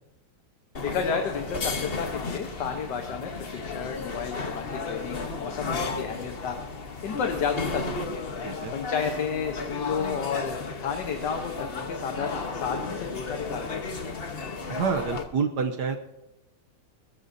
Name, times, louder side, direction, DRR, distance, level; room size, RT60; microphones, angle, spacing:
sound 1, 0.7-15.2, left 4 dB, 40° left, 1.1 m, -34 dB
voice 1, 0.8-8.2 8.7-14.2, left 6 dB, 75° left, 4 dB, 1.7 m, -32 dB
voice 2, 14.7-16.0, right 6 dB, 70° right, 5 dB, 1.4 m, -28 dB
22.0 x 14.5 x 2.7 m, 0.99 s
omnidirectional pair, 1.9 m